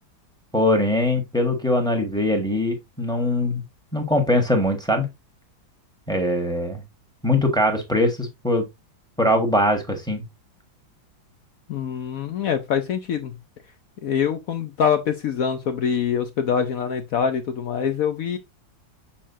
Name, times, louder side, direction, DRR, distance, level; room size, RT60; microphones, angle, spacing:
voice 1, 0.5-3.6 3.9-5.1 6.1-6.8 7.2-8.6 9.2-10.2, left 1 dB, ahead, 1.2 m, -21 dB
voice 2, 11.7-13.4 13.6-13.7 14.0-18.4, left 7 dB, 75° left, 0.8 m, -24 dB
7.0 x 5.3 x 2.6 m
omnidirectional pair, 2.1 m